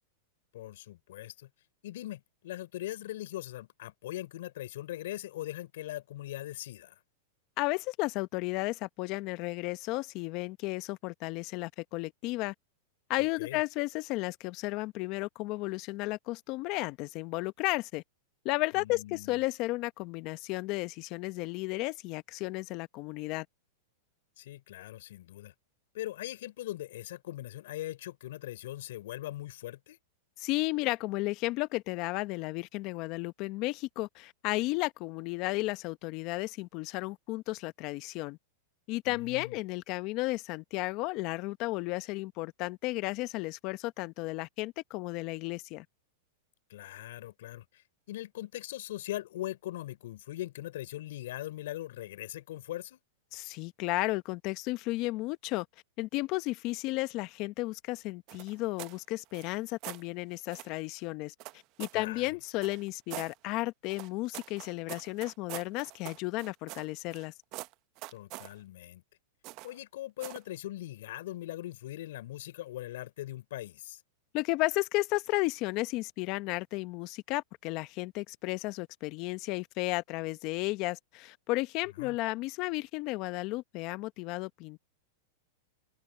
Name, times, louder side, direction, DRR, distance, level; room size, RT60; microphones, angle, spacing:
voice 1, 0.5-1.5 1.8-7.0 13.4-13.6 18.7-19.4 24.4-25.5 25.9-30.0 39.1-39.6 46.7-53.0 61.9-62.4 68.1-69.0 69.6-74.0 82.0-82.2, left 14 dB, 70° left, 5.3 m, -41 dB
voice 2, 7.6-12.5 13.1-18.0 18.4-23.5 30.4-38.4 38.9-45.8 53.3-55.7 56.0-61.3 61.8-67.3 74.3-84.9, left 21 dB, 45° left, 1.0 m, -33 dB
sound 1, 58.3-59.0 59.3-60.0 60.5-60.8 61.4-62.0 62.6-63.3 63.9-67.3 67.5-68.5 69.4-69.8 70.2-70.5, right 20 dB, 45° right, 1.1 m, -44 dB
hypercardioid pair, 130°, 0 cm